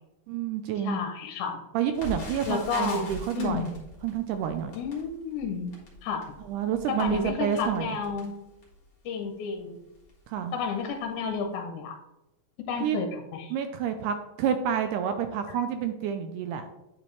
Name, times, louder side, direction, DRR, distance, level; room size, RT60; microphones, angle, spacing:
voice 1, 0.3-1.0 1.7-3.7 4.0-4.7 6.5-7.9 10.3-10.6 12.8-13.0 13.5-16.7, right 8 dB, 80° right, 8 dB, 1.9 m, -29 dB
voice 2, 0.8-1.6 2.5-3.1 3.4-3.7 4.8-6.2 6.9-8.3 9.1-9.8 10.5-12.0 12.7-13.5, left 5 dB, 75° left, 4 dB, 2.0 m, -31 dB
Crackle, 1.9-8.9 9.5-9.6 9.9-10.2 10.8-11.0 11.3-11.4, left 2 dB, 35° left, 1.5 m, -43 dB
9.0 x 4.5 x 3.1 m, 0.92 s
omnidirectional pair, 3.9 m